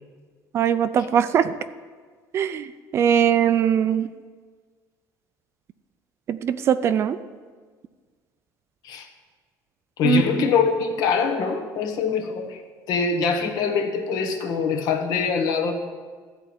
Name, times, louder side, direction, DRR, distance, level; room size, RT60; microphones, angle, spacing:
voice 1, 0.5-1.5 2.3-4.1 6.3-7.2 10.0-10.2, right 8 dB, 35° right, 13 dB, 0.4 m, -21 dB
voice 2, 10.0-12.6 12.9-15.7, left 6 dB, 60° left, 4 dB, 1.3 m, -23 dB
13.0 x 4.5 x 8.6 m, 1.5 s
cardioid pair, 165°, 7 cm